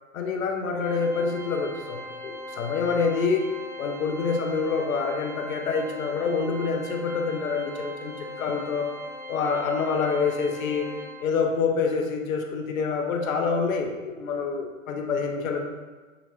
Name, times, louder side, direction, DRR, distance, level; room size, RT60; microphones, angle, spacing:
voice 1, 0.1-3.5 3.8-9.0 9.3-10.9 11.2-15.6, left 5 dB, 85° left, 3 dB, 0.7 m, -27 dB
Organ, 0.8-11.5, left 1 dB, 5° right, 0.4 m, -40 dB
5.8 x 2.9 x 2.7 m, 1.3 s
hypercardioid pair, 120°, 40 cm